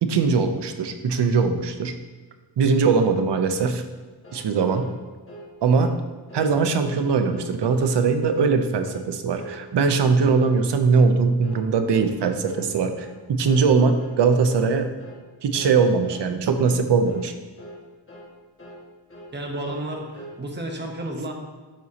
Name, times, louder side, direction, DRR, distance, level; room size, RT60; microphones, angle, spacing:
voice 1, 0.0-2.0 2.6-3.8 4.3-4.9 5.6-5.9 6.3-14.9 15.4-17.3, right 5 dB, 60° right, 7 dB, 0.7 m, -21 dB
sound 1, 4.2-4.5 4.7-5.0 5.3-5.5 5.8-6.0 6.3-6.5 6.8-7.0 7.3-7.5 7.8-8.1 8.3-8.6 8.8-9.1 9.4-9.6 9.9-10.1 10.4-10.6 10.9-11.1 11.4-11.7 11.9-12.1 12.4-12.7 12.9-13.2 13.5-13.7 14.0-14.2 14.5-14.7 15.0-15.2 15.5-15.7 16.0-16.3 16.5-16.8 17.1-17.3 17.6-17.8 18.1-18.3 18.6-18.8 19.1-19.3 19.6-19.9 20.1-20.4, right 1 dB, 25° left, 1.6 m, -42 dB
voice 2, 19.3-21.3, right 1 dB, 20° right, 1 dB, 1.0 m, -32 dB
11.5 x 4.1 x 2.9 m, 1.3 s
wide cardioid pair, 120°, 48 cm